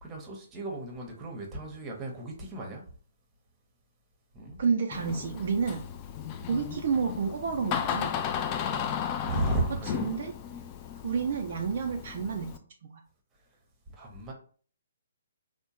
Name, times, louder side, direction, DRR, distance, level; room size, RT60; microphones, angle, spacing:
voice 1, 0.0-2.8 4.3-4.6 9.2-10.1 13.9-14.3, right 2 dB, 15° right, 0.8 m, -34 dB
voice 2, 4.6-5.8 6.5-8.1 9.9-10.3 11.0-12.5 12.8-12.9, right 5 dB, 50° right, 0.4 m, -29 dB
Door, 4.9-12.6, left 8 dB, 25° left, 0.3 m, -35 dB
3.5 x 2.1 x 2.8 m
figure-of-eight pair, 130°, 0 cm